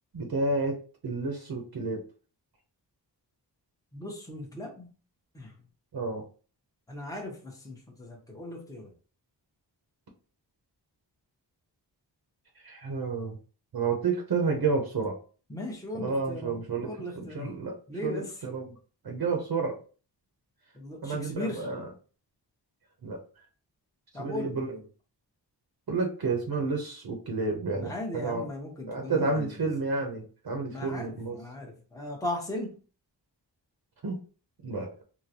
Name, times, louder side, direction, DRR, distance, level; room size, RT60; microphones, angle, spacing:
voice 1, 0.1-0.8 1.0-2.0 5.9-6.2 12.6-13.4 13.7-15.2 15.9-16.9 17.1-17.8 18.0-18.7 19.0-19.8 21.0-21.9 23.0-23.2 24.2-24.7 25.9-28.4 28.9-31.4 34.0-34.2 34.6-34.9, right 4 dB, 60° right, 2 dB, 0.7 m, -30 dB
voice 2, 3.9-4.9 5.3-5.5 6.9-8.9 15.5-17.5 17.9-18.3 20.7-21.7 24.1-24.8 27.8-29.5 30.7-32.7, left 1 dB, 10° left, 1 dB, 0.8 m, -37 dB
3.7 x 2.1 x 2.8 m, 0.37 s
wide cardioid pair, 110°, 43 cm